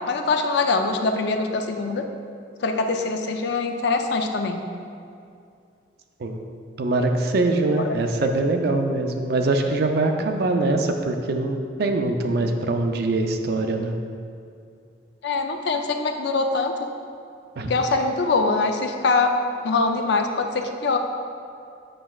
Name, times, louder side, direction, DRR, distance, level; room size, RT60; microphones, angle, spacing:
voice 1, 0.1-2.0 2.6-4.6 7.8-7.9 15.2-16.7 17.7-19.3 19.6-21.0, left 3 dB, 65° left, 5 dB, 0.5 m, -23 dB
voice 2, 6.8-13.9 17.6-17.7, right 2 dB, 55° right, 5 dB, 0.4 m, -23 dB
7.6 x 6.0 x 2.3 m, 2.4 s
head